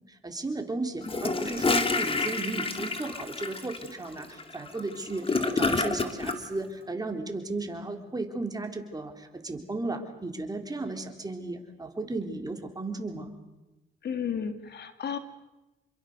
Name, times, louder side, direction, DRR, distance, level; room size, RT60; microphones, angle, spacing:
voice 1, 0.1-13.3, right 2 dB, 20° right, 4 dB, 3.7 m, -35 dB
Gurgling / Toilet flush, 1.0-6.4, left 3 dB, 30° left, 2.4 m, -28 dB
voice 2, 14.0-15.2, left 7 dB, 55° left, 9 dB, 2.2 m, -33 dB
28.0 x 22.5 x 6.8 m, 1.0 s
cardioid pair, 90°, 20 cm